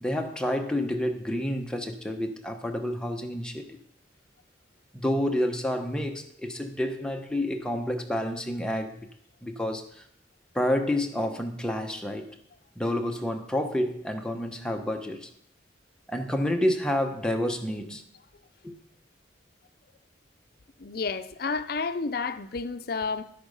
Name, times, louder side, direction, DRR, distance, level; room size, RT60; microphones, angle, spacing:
voice 1, 0.0-3.8 4.9-9.0 9.4-10.0 10.5-12.4 12.8-15.3 16.1-18.0 18.6-18.8, left 1 dB, 5° left, 1.0 m, -29 dB
voice 2, 20.8-23.2, left 4 dB, 55° left, 0.6 m, -31 dB
11.5 x 8.5 x 5.4 m
head